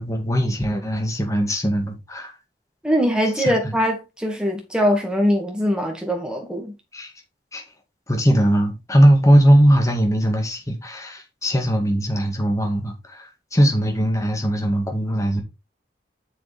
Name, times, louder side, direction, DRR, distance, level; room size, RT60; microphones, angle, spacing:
voice 1, 0.0-2.3 3.4-3.8 6.9-7.1 7.5-7.6 8.1-15.4, equal, 20° left, 2.0 m, -20 dB
voice 2, 2.8-6.7, equal, 5° right, 2.1 m, -22 dB
6.9 x 6.9 x 3.6 m
head